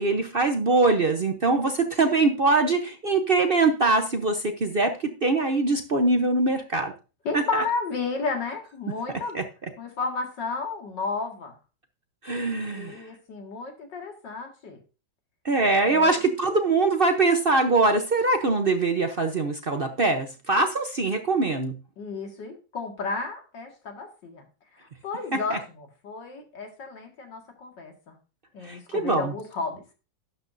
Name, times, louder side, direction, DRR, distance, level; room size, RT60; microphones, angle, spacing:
voice 1, 0.0-6.9 7.3-7.6 9.3-9.4 12.2-13.1 15.4-21.7 25.3-25.6 28.6-29.3, right 3 dB, 45° right, 6 dB, 0.7 m, -23 dB
voice 2, 7.3-9.4 9.8-11.5 12.6-14.8 15.8-16.1 22.0-24.4 25.0-25.6 26.0-28.2 28.5-29.8, left 4 dB, 90° left, 3 dB, 2.7 m, -32 dB
12.0 x 8.7 x 2.6 m, 0.32 s
omnidirectional pair, 1.9 m